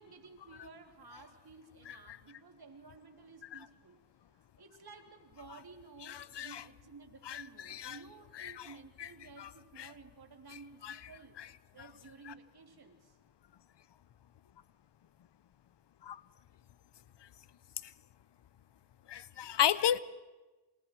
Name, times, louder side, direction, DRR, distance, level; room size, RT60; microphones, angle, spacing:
voice 1, 0.0-4.0 4.3-11.4 11.7-13.1, right 4 dB, 55° right, 5 dB, 3.4 m, -54 dB
voice 2, 1.9-2.2 3.5-3.6 6.0-6.6 7.2-8.0 8.3-8.7 9.0-9.1 9.4-9.5 9.8-9.9 10.8-11.0 11.4-11.5 12.3-12.4 16.0-16.2 17.8-17.9 19.1-20.0, left 10 dB, 65° left, 18 dB, 0.9 m, -34 dB
28.0 x 28.0 x 4.8 m, 1.2 s
cardioid pair, 55°, 45 cm